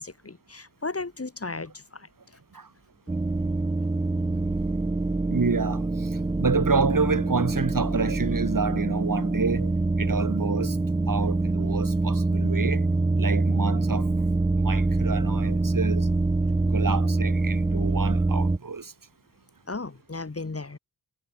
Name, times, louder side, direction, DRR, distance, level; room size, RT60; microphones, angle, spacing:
voice 1, 0.0-2.1 19.7-20.8, left 3 dB, 35° left, 3.9 m, -35 dB
sound 1, 3.1-18.6, right 2 dB, 10° right, 0.5 m, -25 dB
voice 2, 5.3-6.1 6.4-9.7 10.0-10.8 11.1-12.8 13.2-14.1 14.6-16.1 16.7-18.9, right 4 dB, 50° right, 5.8 m, -28 dB
wide cardioid pair, 80°, 42 cm